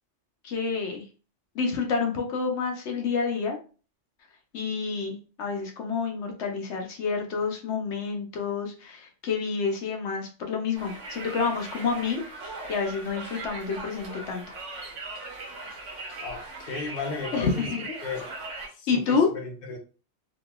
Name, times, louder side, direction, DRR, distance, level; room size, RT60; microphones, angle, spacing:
voice 1, 0.4-1.0 1.5-3.6 4.5-14.4 17.3-17.8 18.9-19.3, left 5 dB, 75° left, 2 dB, 0.9 m, -28 dB
Conversation, 10.7-18.7, right 2 dB, 85° right, 1.2 m, -39 dB
voice 2, 16.2-17.7 18.0-18.3 18.7-19.8, left 4 dB, 45° left, 1 dB, 0.8 m, -35 dB
3.0 x 2.6 x 2.2 m, 0.35 s
omnidirectional pair, 1.2 m